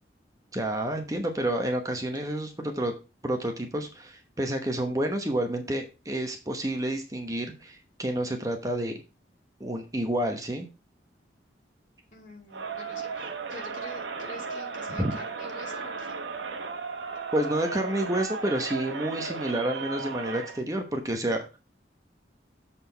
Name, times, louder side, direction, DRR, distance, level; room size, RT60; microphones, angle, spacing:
voice 1, 0.5-2.9 3.2-9.0 9.6-10.7 15.0-15.1 17.3-21.5, right 1 dB, 20° right, 4 dB, 1.0 m, -29 dB
voice 2, 12.1-16.2, left 1 dB, 45° left, 0 dB, 2.5 m, -46 dB
Crowd, 12.5-20.6, right 4 dB, 90° right, 1.0 m, -35 dB
7.4 x 4.2 x 5.6 m, 0.30 s
head